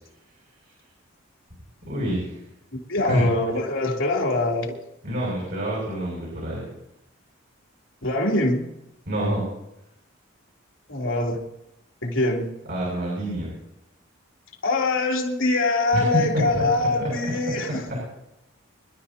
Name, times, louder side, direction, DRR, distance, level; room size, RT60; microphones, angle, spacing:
voice 1, 1.8-2.3 3.1-3.2 5.0-6.6 9.1-9.4 12.7-13.5 15.9-16.0 16.3-16.6 17.0-17.1 17.9-18.0, equal, 50° right, -4 dB, 6.8 m, -27 dB
voice 2, 2.9-4.8 8.0-8.7 10.9-11.4 12.0-12.5 14.6-17.8, left 2 dB, 70° left, -1 dB, 3.3 m, -23 dB
26.0 x 12.5 x 2.9 m, 0.84 s
head